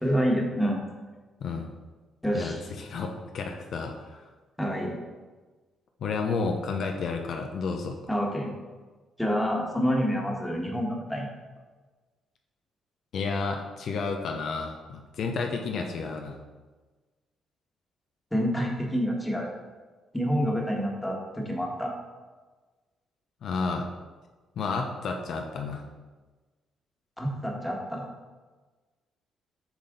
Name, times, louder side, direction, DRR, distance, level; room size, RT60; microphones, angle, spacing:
voice 1, 0.0-0.8 2.2-2.6 4.6-5.0 8.1-8.5 9.2-11.3 18.3-19.5 20.1-21.9 27.2-28.0, equal, 5° left, -1 dB, 1.4 m, -27 dB
voice 2, 2.3-4.3 6.0-8.0 13.1-16.4 23.4-23.8 24.6-25.8, left 4 dB, 65° left, 3 dB, 0.6 m, -31 dB
7.2 x 4.0 x 3.9 m, 1.3 s
cardioid pair, 90°, 0 cm